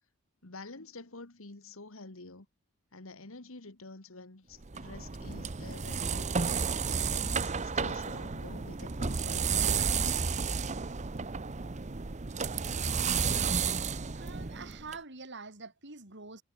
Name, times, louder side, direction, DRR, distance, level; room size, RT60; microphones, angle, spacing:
voice 1, 0.4-2.5 2.9-9.7, left 3 dB, 65° left, 1.9 m, -48 dB
sound 1, 4.6-15.0, right 5 dB, 30° right, 0.8 m, -32 dB
voice 2, 13.2-13.6 14.1-16.4, right 4 dB, 55° right, 4.1 m, -45 dB
head